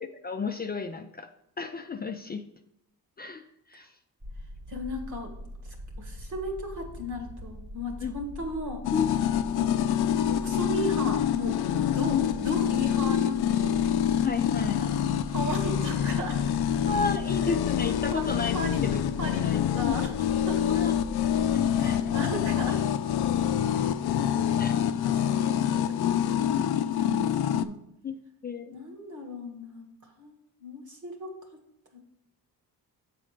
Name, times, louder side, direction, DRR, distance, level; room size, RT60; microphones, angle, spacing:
voice 1, 0.2-1.3 1.6-2.4 3.2-3.4 3.7-3.9 8.0-8.1 8.9-9.1 14.2-14.8 16.8-18.6 18.8-19.0 19.4-19.6 20.7-20.9 21.5-22.1 22.7-22.8 24.6-24.7 28.0-28.2 28.4-28.7, left 5 dB, 25° left, 5 dB, 0.4 m, -32 dB
sound 1, 4.2-22.2, equal, 20° right, 0.6 m, -43 dB
voice 2, 4.7-5.3 5.6-8.8 9.5-9.8 10.3-13.8 14.8-16.5 18.1-18.3 18.5-18.8 19.2-20.8 21.8-22.8 23.7-23.9 24.2-26.3 26.5-27.8 28.7-31.4 31.9-32.0, left 1 dB, 50° right, 3 dB, 2.0 m, -36 dB
sound 2, 8.8-27.6, left 9 dB, 85° left, 0.5 m, -26 dB
7.6 x 4.2 x 5.1 m, 0.81 s
cardioid pair, 100°, 37 cm